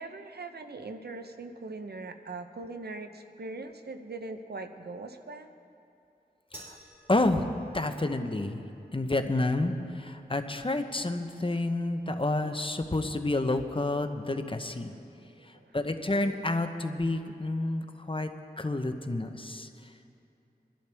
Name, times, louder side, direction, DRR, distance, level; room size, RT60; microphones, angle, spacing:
voice 1, 0.0-5.5 14.9-15.7, right 3 dB, 80° right, 7 dB, 0.8 m, -41 dB
sound 1, 6.5-13.1, right 1 dB, 15° right, 4.0 m, -57 dB
voice 2, 7.1-7.5 7.7-8.6 8.9-14.9 15.7-18.3 18.6-19.7, left 2 dB, 35° left, 7 dB, 0.9 m, -29 dB
23.5 x 11.5 x 3.5 m, 2.7 s
wide cardioid pair, 40°, 16 cm